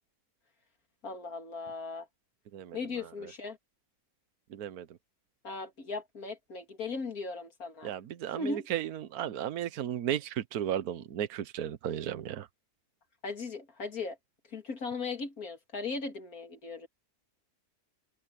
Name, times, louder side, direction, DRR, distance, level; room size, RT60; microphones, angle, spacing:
voice 1, 1.0-2.1 2.7-3.6 5.4-7.9 8.4-8.7 13.2-14.2 14.5-16.9, left 4 dB, 70° left, 3.1 m, -38 dB
voice 2, 4.5-4.9 7.8-12.5, right 10 dB, 80° right, 1.3 m, -34 dB
omnidirectional pair, 1.6 m